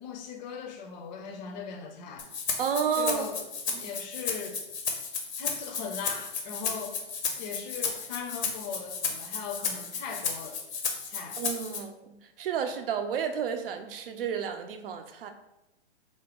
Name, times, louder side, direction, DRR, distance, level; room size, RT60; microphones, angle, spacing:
voice 1, 0.0-2.3 2.9-3.5 3.8-4.6 5.4-7.0 7.4-10.6 11.0-11.4, left 6 dB, 40° left, 4 dB, 0.6 m, -39 dB
Rattle (instrument), 2.2-11.8, left 5 dB, 75° left, 0.8 m, -33 dB
voice 2, 2.6-3.3 3.7-3.8 11.4-15.3, right 7 dB, 55° right, 7 dB, 0.5 m, -31 dB
3.6 x 2.1 x 3.6 m, 0.90 s
hypercardioid pair, 125°, 33 cm